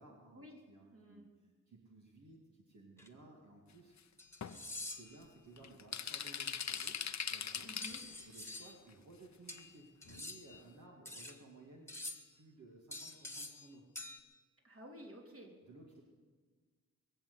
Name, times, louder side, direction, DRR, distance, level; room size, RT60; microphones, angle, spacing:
voice 1, 0.0-4.1 4.8-7.0 7.3-7.7 8.3-11.9 12.3-13.9 15.7-16.0, right 2 dB, 60° right, -2 dB, 2.6 m, -58 dB
voice 2, 0.9-1.3 7.6-8.0 14.6-15.6, equal, 45° right, 1 dB, 3.5 m, -52 dB
sound 1, 3.0-3.1 4.2-5.2 6.7-6.9 7.8-8.8 9.5-10.6 11.1-11.4 11.9-12.3 12.9-13.7 14.0-14.2, left 2 dB, 10° left, 1.8 m, -47 dB
sound 2, 4.0-4.1 4.4-4.6 5.2-5.3 5.6-8.2 8.7-8.8 9.6-9.7 10.1-10.2 10.5-10.6, left 7 dB, 55° left, 0.9 m, -41 dB
22.5 x 7.5 x 8.3 m, 1.4 s
cardioid pair, 65°, 33 cm